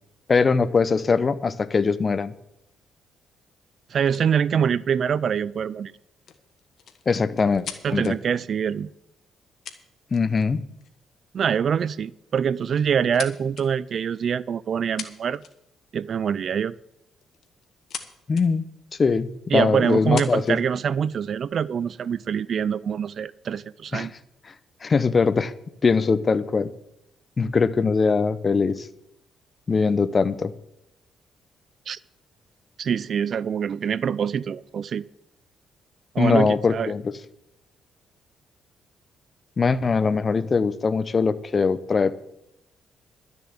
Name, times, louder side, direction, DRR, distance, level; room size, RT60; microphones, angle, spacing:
voice 1, 0.3-2.3 7.1-7.7 7.9-8.2 10.1-10.6 18.3-18.6 19.0-20.6 23.9-24.1 24.8-25.5 25.8-26.7 27.4-28.9 29.7-30.5 36.2-37.1 39.6-42.2, left 4 dB, 35° left, 0.7 m, -21 dB
voice 2, 3.9-5.9 7.8-8.9 11.3-15.4 15.9-16.7 19.5-24.1 31.9-32.0 32.8-35.0 36.1-36.9, right 7 dB, 55° right, 0.4 m, -25 dB
sound 1, 4.1-4.3 6.2-8.1 9.2-9.3 9.6-10.4 10.8-11.0 12.0-12.2 12.6-13.7 14.7-14.8 15.0-15.7 17.2-18.0 18.3-18.5 19.1-19.2 19.9-20.6 21.4-22.1, left 8 dB, 65° left, 1.4 m, -39 dB
12.5 x 6.9 x 7.9 m
cardioid pair, 100°, 0 cm